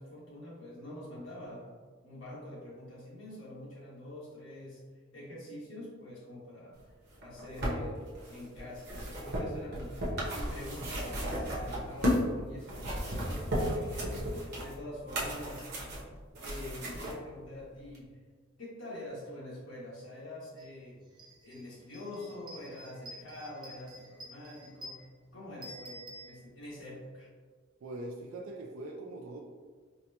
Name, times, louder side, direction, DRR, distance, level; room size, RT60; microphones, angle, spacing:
voice 1, 0.0-1.7 2.0-4.8 5.1-6.8 7.2-14.2 14.6-15.7 16.4-18.1 18.6-21.0 21.4-25.0 25.3-27.3, left 1 dB, 75° left, -7 dB, 1.4 m, -45 dB
sound 1, 7.1-12.3 12.6-17.1 17.9-18.0, equal, 55° right, 0.8 m, -34 dB
sound 2, 9.0-11.0 11.3-14.0, equal, 35° left, 0.3 m, -46 dB
sound 3, 20.6-20.7 21.0-26.9, equal, 25° right, 0.5 m, -50 dB
voice 2, 27.8-29.4, right 2 dB, 90° right, 1 dB, 0.4 m, -42 dB
4.3 x 2.1 x 2.8 m, 1.5 s
head